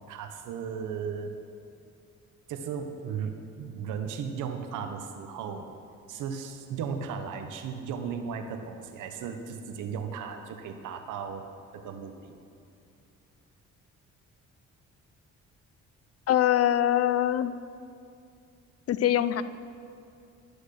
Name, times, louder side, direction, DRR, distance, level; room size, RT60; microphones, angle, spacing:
voice 1, 0.0-1.4 2.5-5.7 6.1-11.4 11.7-12.3, right 6 dB, 85° right, 6 dB, 1.1 m, -36 dB
voice 2, 16.3-17.6 18.9-19.4, left 11 dB, 55° left, 14 dB, 0.5 m, -23 dB
11.5 x 6.3 x 6.6 m, 2.5 s
cardioid pair, 90°, 30 cm